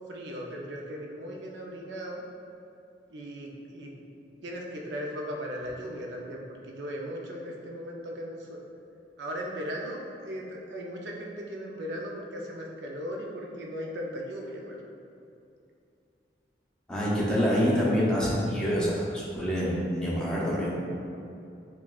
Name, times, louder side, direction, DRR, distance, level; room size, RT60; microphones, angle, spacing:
voice 1, 0.1-2.3 3.1-3.9 4.4-8.6 9.2-14.8, equal, 90° right, -1 dB, 0.6 m, -37 dB
voice 2, 16.9-20.8, equal, 5° left, -7 dB, 0.6 m, -26 dB
5.9 x 2.3 x 2.4 m, 2.6 s
head